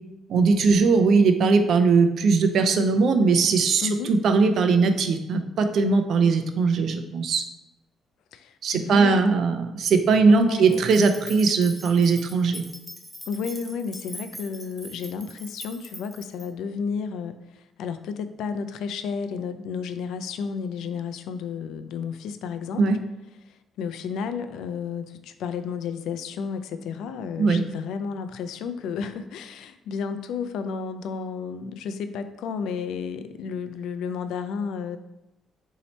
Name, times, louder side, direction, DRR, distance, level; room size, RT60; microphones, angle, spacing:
voice 1, 0.3-7.4 8.6-12.6 22.8-23.0 27.4-27.6, right 4 dB, 65° right, 7 dB, 0.5 m, -20 dB
voice 2, 3.8-4.1 8.3-9.3 10.3-10.8 13.3-22.8 23.5-35.0, left 6 dB, 85° left, 9 dB, 0.3 m, -32 dB
sound 1, 10.7-16.5, equal, 5° right, 0.7 m, -42 dB
4.1 x 2.8 x 4.3 m, 0.94 s
cardioid pair, 90°, 0 cm